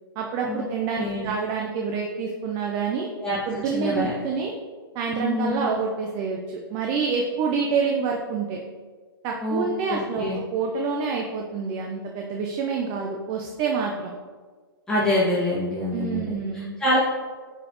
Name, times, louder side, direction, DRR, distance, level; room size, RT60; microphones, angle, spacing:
voice 1, 0.2-3.1 3.4-4.5 4.9-8.6 9.2-14.1 15.9-16.8, right 5 dB, 30° right, 0 dB, 0.7 m, -27 dB
voice 2, 1.0-1.3 3.2-3.4 3.7-4.1 5.2-5.7 9.4-10.4 14.9-16.3 16.8-17.0, left 1 dB, 5° left, -11 dB, 1.8 m, -25 dB
9.8 x 4.3 x 3.0 m, 1.5 s
hypercardioid pair, 130°, 12 cm